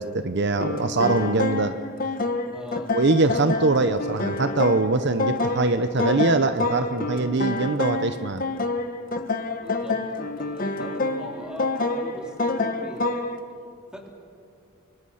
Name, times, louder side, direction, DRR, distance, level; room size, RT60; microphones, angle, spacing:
voice 1, 0.0-1.8 2.9-8.4, right 3 dB, 55° right, 10 dB, 0.8 m, -23 dB
sound 1, 0.6-13.4, left 3 dB, 45° left, 1.2 m, -28 dB
voice 2, 2.5-2.9 9.6-13.1 13.9-14.1, equal, 5° right, 0 dB, 3.6 m, -41 dB
26.0 x 24.5 x 5.7 m, 2.6 s
head